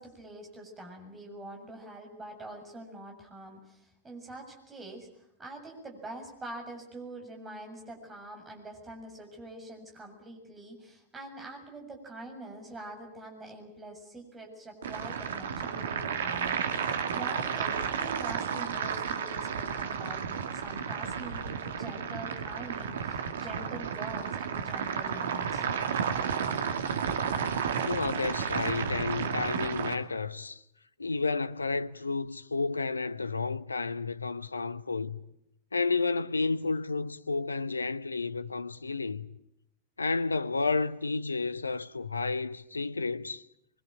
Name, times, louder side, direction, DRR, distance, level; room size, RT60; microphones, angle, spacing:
voice 1, 0.0-25.7, right 2 dB, 15° right, 7.5 m, -45 dB
sound 1, 14.8-29.9, right 7 dB, 60° right, 1.9 m, -32 dB
voice 2, 27.8-30.6 31.0-35.2 35.7-39.3 40.0-43.4, left 4 dB, 80° left, 0.9 m, -31 dB
23.5 x 23.5 x 9.0 m
figure-of-eight pair, 90°, 0 cm